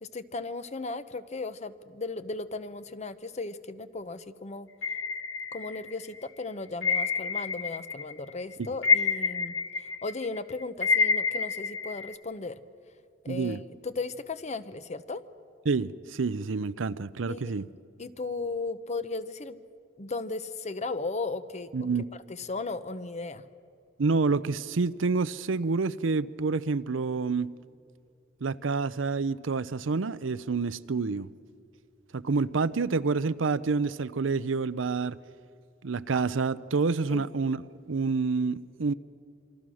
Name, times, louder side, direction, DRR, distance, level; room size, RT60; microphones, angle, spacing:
voice 1, 0.0-4.7 5.5-9.5 10.0-12.6 13.2-15.2 17.3-19.6 20.0-21.7 22.3-23.4 37.1-37.2, left 3 dB, 35° left, 0.9 m, -36 dB
sound 1, 4.8-6.1 6.8-8.1 8.4-12.1, left 5 dB, 80° left, 1.3 m, -28 dB
voice 2, 13.3-13.6 15.7-17.7 21.7-22.0 24.0-27.5 28.4-31.3 32.1-35.2 35.8-38.9, right 4 dB, 85° right, 0.6 m, -28 dB
27.0 x 25.0 x 6.3 m
head